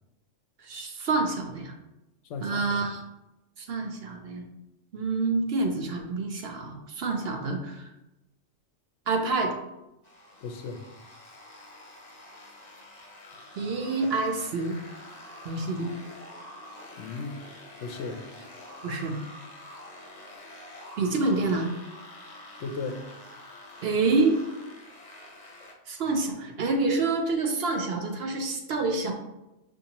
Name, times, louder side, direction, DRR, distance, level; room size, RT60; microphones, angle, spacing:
voice 1, 0.6-1.7 2.4-3.0 3.6-4.4 4.9-7.9 9.1-9.5 13.6-14.8 15.4-15.9 18.8-19.2 21.0-21.7 23.8-24.4 25.9-29.1, right 3 dB, 60° right, 3 dB, 0.8 m, -27 dB
voice 2, 2.3-2.8 10.4-10.8 17.0-17.4 17.8-18.2 22.6-23.1, left 4 dB, 70° left, 5 dB, 0.9 m, -35 dB
sound 1, 10.0-25.7, left 1 dB, 35° left, 0.9 m, -47 dB
6.4 x 2.7 x 2.9 m, 0.94 s
omnidirectional pair, 1.3 m